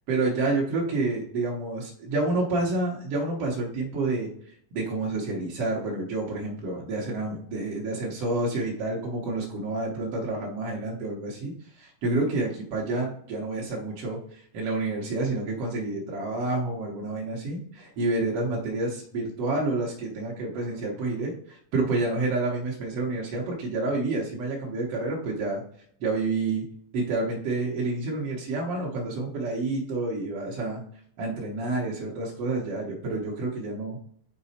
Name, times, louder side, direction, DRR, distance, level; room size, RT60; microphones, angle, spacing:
voice 1, 0.1-25.6 26.0-26.7 26.9-30.8 31.2-34.0, right 2 dB, 70° right, -2 dB, 1.4 m, -29 dB
6.1 x 4.1 x 4.2 m, 0.63 s
omnidirectional pair, 4.1 m